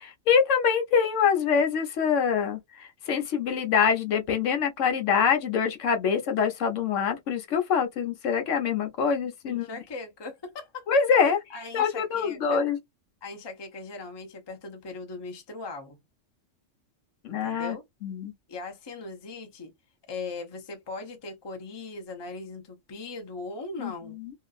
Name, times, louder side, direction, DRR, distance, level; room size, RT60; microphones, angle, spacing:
voice 1, 0.0-9.7 10.9-11.4 11.7-12.8 17.2-17.8 18.0-18.3 23.8-23.9 24.2-24.3, left 6 dB, 70° left, 1.0 m, -25 dB
voice 2, 9.5-10.9 11.2-12.6 13.2-16.0 17.3-17.8 18.5-19.7 20.1-24.2, left 3 dB, 25° left, 0.6 m, -39 dB
2.8 x 2.5 x 2.3 m
omnidirectional pair, 1.3 m